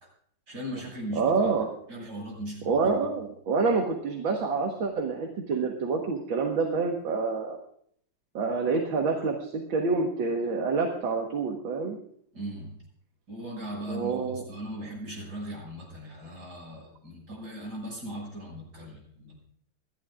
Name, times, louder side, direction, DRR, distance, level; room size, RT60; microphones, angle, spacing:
voice 1, 0.5-1.5 1.9-3.1 12.3-12.8 13.3-19.4, right 1 dB, 55° right, -2 dB, 7.0 m, -38 dB
voice 2, 1.2-1.7 2.7-7.6 8.3-12.0 13.9-14.4, right 4 dB, 75° right, 1 dB, 2.2 m, -27 dB
28.5 x 11.5 x 2.5 m, 0.65 s
omnidirectional pair, 2.1 m